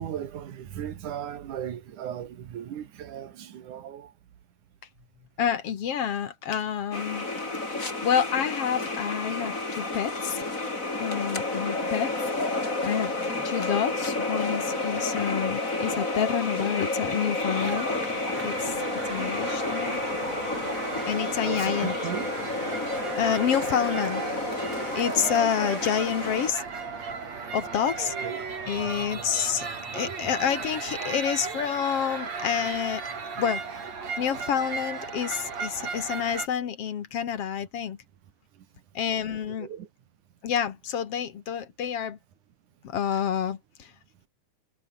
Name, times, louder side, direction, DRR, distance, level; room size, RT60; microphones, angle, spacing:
voice 1, 0.0-4.1 21.4-22.3 28.2-28.4 29.1-29.2 29.9-30.0 39.3-39.9, right 10 dB, 70° right, 3.3 m, -36 dB
voice 2, 5.4-7.3 8.0-10.5 11.0-12.1 12.5-18.2 18.4-20.0 21.0-21.9 23.2-24.2 24.5-24.6 25.0-26.6 27.5-28.1 28.7-29.7 29.9-33.0 33.4-33.6 34.2-38.0 38.9-39.7 40.4-42.2 42.8-43.9, left 8 dB, 55° left, 2.3 m, -28 dB
sound 1, 6.9-26.5, left 2 dB, 25° left, 5.1 m, -30 dB
sound 2, 17.5-36.5, right 5 dB, 55° right, 5.3 m, -35 dB
omnidirectional pair, 3.7 m